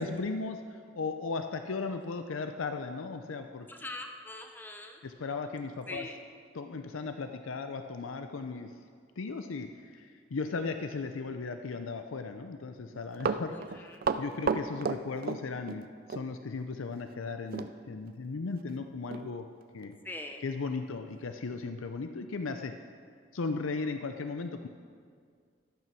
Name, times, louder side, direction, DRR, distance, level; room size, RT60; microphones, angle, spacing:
voice 1, 0.0-3.7 5.0-6.1 6.5-8.7 9.2-13.9 14.2-19.4 19.7-20.0 20.4-22.7 23.3-24.7, left 4 dB, 85° left, 7 dB, 0.5 m, -36 dB
voice 2, 3.7-5.0 5.9-6.2 13.8-14.1 20.0-20.4, left 2 dB, 10° left, 4 dB, 0.7 m, -42 dB
Run, 12.9-15.8 16.1-16.3 17.5-17.7 18.1-18.2 18.7-18.8 19.1-19.3 19.8-19.9, right 5 dB, 45° right, 0.4 m, -32 dB
12.0 x 9.1 x 6.2 m, 2.1 s
head